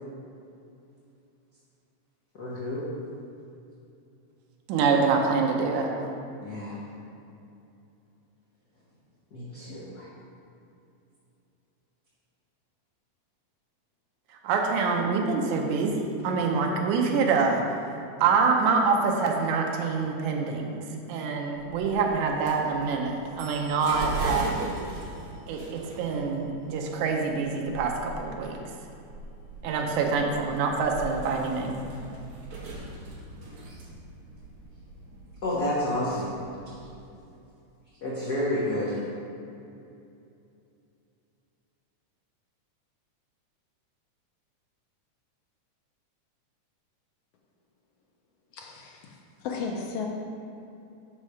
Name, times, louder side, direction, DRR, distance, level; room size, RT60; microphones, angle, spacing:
voice 1, 2.3-2.8 6.4-6.8 9.3-10.1 35.4-36.3 38.0-39.0, left 1 dB, 55° left, -9 dB, 1.0 m, -30 dB
voice 2, 4.7-5.9 14.4-17.6 18.2-20.8 21.1-24.5 25.5-28.6 29.6-31.8, right 4 dB, 85° right, 1 dB, 2.1 m, -25 dB
sound 1, 21.6-37.0, right 2 dB, 70° right, 2.4 m, -40 dB
voice 3, 48.5-50.1, left 5 dB, 80° left, -1 dB, 1.4 m, -35 dB
6.2 x 5.6 x 4.8 m, 2.6 s
omnidirectional pair, 3.5 m